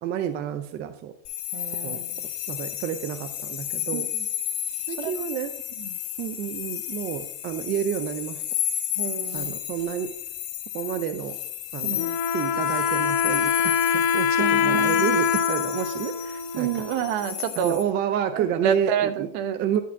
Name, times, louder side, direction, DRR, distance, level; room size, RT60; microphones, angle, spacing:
voice 1, 0.0-1.2 1.8-2.0 2.5-4.1 4.9-5.5 6.2-8.4 9.3-10.1 10.7-11.4 11.7-12.1 12.3-16.9 17.6-19.3 19.6-19.8, right 9 dB, 35° right, 9 dB, 0.5 m, -29 dB
sound 1, 1.2-17.8, left 12 dB, 70° left, 2.7 m, -33 dB
voice 2, 1.5-2.2 3.9-4.0 5.0-5.1 5.8-5.9 9.0-9.5 11.8-12.2 14.4-15.1 16.6-17.8 18.3-19.6, right 9 dB, 60° right, 9 dB, 1.1 m, -29 dB
Wind instrument woodwind instrument, 12.0-17.5, left 7 dB, 55° left, 0.9 m, -24 dB
11.0 x 4.3 x 5.9 m, 0.69 s
cardioid pair, 160°, 31 cm